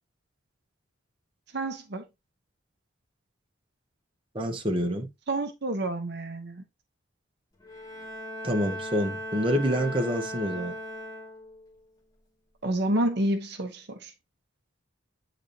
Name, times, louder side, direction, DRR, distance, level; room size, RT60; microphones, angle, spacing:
voice 1, 1.5-2.0 5.3-6.6 12.6-14.1, right 1 dB, 55° right, 1.0 m, -29 dB
voice 2, 4.3-5.1 8.4-10.7, equal, 25° right, 1.2 m, -27 dB
Bowed string instrument, 7.6-11.7, equal, 20° left, 2.3 m, -38 dB
8.8 x 4.0 x 2.9 m
head